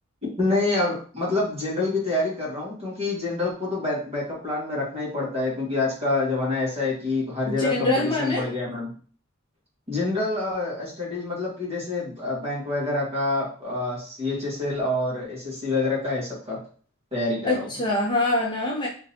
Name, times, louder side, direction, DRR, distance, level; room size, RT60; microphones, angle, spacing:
voice 1, 0.4-8.9 9.9-16.6 17.1-17.7, left 2 dB, 30° right, -5 dB, 1.6 m, -27 dB
voice 2, 7.4-8.4 17.4-18.9, left 2 dB, 20° left, -4 dB, 0.7 m, -24 dB
3.6 x 2.9 x 2.7 m, 0.43 s
head